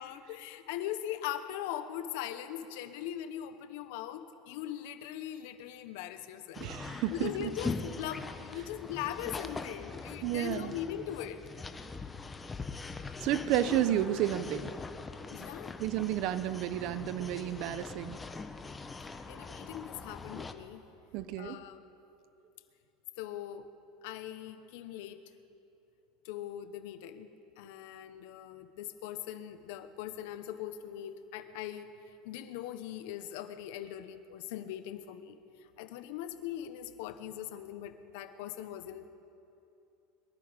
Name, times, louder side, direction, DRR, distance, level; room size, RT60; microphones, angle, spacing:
voice 1, 0.0-6.7 7.1-11.4 15.3-15.8 19.3-20.9 21.4-21.9 23.2-23.7 24.0-25.2 26.2-31.9 32.2-39.1, left 11 dB, 75° left, 10 dB, 1.0 m, -40 dB
sound 1, 6.5-20.5, left 4 dB, 15° left, 0.8 m, -42 dB
voice 2, 6.6-7.5 10.2-10.8 13.2-14.7 15.8-18.2 21.1-21.6, right 11 dB, 60° right, 13 dB, 0.8 m, -31 dB
22.5 x 11.5 x 5.2 m, 2.8 s
supercardioid pair, 130°, 0 cm